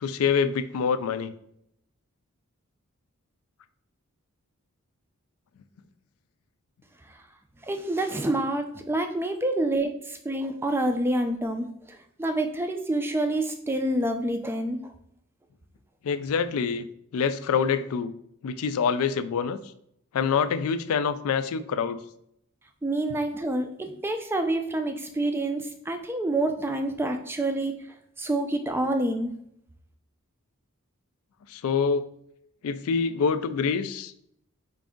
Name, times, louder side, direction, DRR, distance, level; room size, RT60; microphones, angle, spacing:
voice 1, 0.0-1.3 16.0-16.9 17.1-18.1 18.4-19.6 20.1-22.0 31.5-32.1 32.6-34.1, left 6 dB, 75° left, 12 dB, 0.3 m, -26 dB
voice 2, 7.7-14.9 22.8-27.7 28.2-29.3, right 1 dB, 10° right, 6 dB, 0.3 m, -27 dB
4.6 x 2.5 x 3.6 m, 0.73 s
head